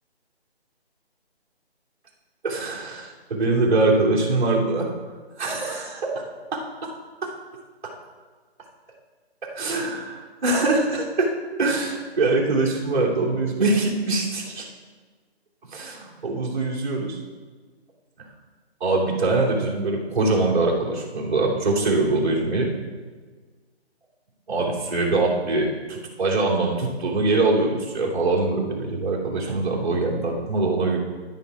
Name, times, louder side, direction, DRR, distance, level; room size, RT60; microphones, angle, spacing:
voice 1, 2.4-4.9 5.4-6.1 9.5-11.3 11.6-14.6 15.7-17.2 18.8-22.7 24.5-31.0, right 2 dB, 45° right, -5 dB, 2.9 m, -23 dB
13.0 x 5.6 x 4.8 m, 1.4 s
hypercardioid pair, 160°, 32 cm